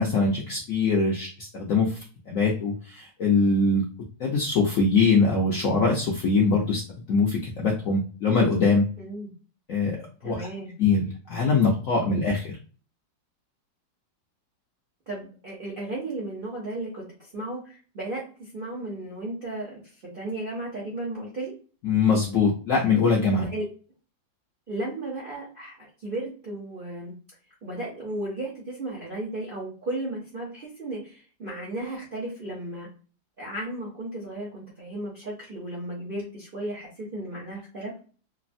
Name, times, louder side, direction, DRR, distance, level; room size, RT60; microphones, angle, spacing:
voice 1, 0.0-2.0 2.3-3.8 4.2-6.8 7.1-8.9 9.7-10.0 10.2-10.5 10.8-12.5 21.8-23.5, left 4 dB, 75° left, -2 dB, 0.7 m, -22 dB
voice 2, 9.0-9.3 10.2-10.7 15.1-21.5 23.4-23.7 24.7-27.1 27.6-32.9 33.4-37.9, right 1 dB, 55° right, -5 dB, 0.6 m, -35 dB
3.2 x 2.0 x 2.5 m, 0.38 s
omnidirectional pair, 2.1 m